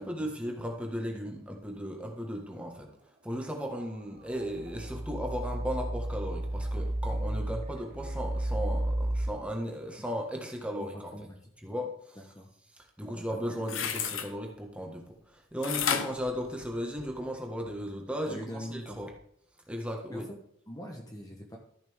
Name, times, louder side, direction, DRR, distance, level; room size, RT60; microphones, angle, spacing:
voice 1, 0.0-2.9 3.2-11.1 11.6-12.2 13.0-19.1 19.7-20.2, equal, 5° right, 1 dB, 1.5 m, -36 dB
sound 1, 3.7-4.0 4.3-9.3, right 1 dB, 40° right, 1.1 m, -33 dB
voice 2, 10.6-11.4 12.2-12.5 13.1-13.4 18.3-19.0 20.1-20.2 20.7-21.6, equal, 20° left, 1 dB, 1.2 m, -43 dB
sound 2, 13.6-14.3 15.6-17.2 17.7-17.8, left 7 dB, 75° left, 0.9 m, -32 dB
14.0 x 5.9 x 3.6 m, 0.74 s
head